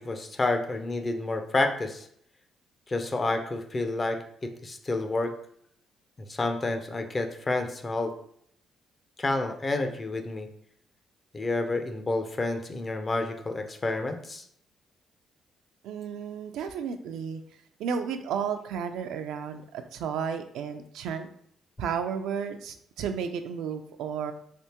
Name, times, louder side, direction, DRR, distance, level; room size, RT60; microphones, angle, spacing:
voice 1, 0.0-2.1 2.9-5.3 6.3-8.1 9.2-10.5 11.3-14.4, left 2 dB, 30° left, 6 dB, 0.5 m, -29 dB
voice 2, 15.8-17.4 17.8-21.3 21.8-24.3, right 7 dB, 85° right, 7 dB, 0.3 m, -33 dB
3.3 x 2.8 x 2.9 m, 0.67 s
cardioid pair, 90°, 0 cm